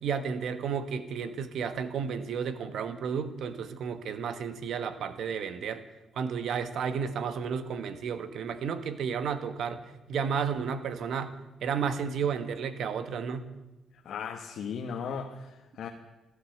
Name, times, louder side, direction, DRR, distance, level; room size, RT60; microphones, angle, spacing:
voice 1, 0.0-5.8 6.1-13.5, right 6 dB, 70° right, 11 dB, 1.3 m, -32 dB
voice 2, 14.0-15.9, left 6 dB, 70° left, 3 dB, 1.3 m, -37 dB
13.0 x 12.5 x 7.7 m, 1.1 s
cardioid pair, 90°, 0 cm